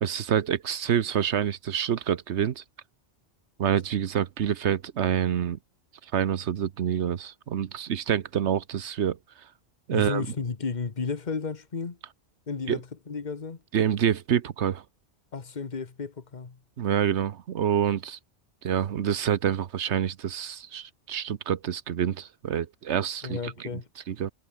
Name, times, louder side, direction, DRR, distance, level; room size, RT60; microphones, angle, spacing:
voice 1, 0.0-2.6 3.6-5.6 6.1-9.2 9.9-10.2 12.7-12.8 13.7-14.8 16.8-18.2 18.6-23.7 24.1-24.3, right 9 dB, 80° right, 1.1 m, -27 dB
voice 2, 9.9-12.0 12.5-13.6 15.3-16.6 23.2-23.9, left 5 dB, 40° left, 1.5 m, -33 dB
omnidirectional pair, 1.2 m